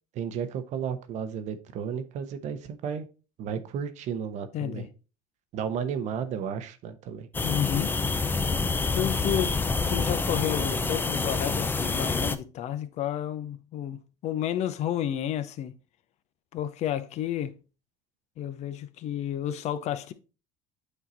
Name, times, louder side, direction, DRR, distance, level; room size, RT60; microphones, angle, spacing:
voice 1, 0.1-3.1 3.4-4.9 5.5-7.3, right 7 dB, 55° right, 0.9 m, -33 dB
voice 2, 4.5-4.9 7.4-8.0 8.9-9.5 9.9-15.8 16.5-17.5 18.4-20.1, left 11 dB, 50° left, 0.7 m, -31 dB
sound 1, 7.3-12.4, left 4 dB, 15° left, 0.5 m, -27 dB
8.2 x 2.9 x 3.9 m
supercardioid pair, 95°, 14 cm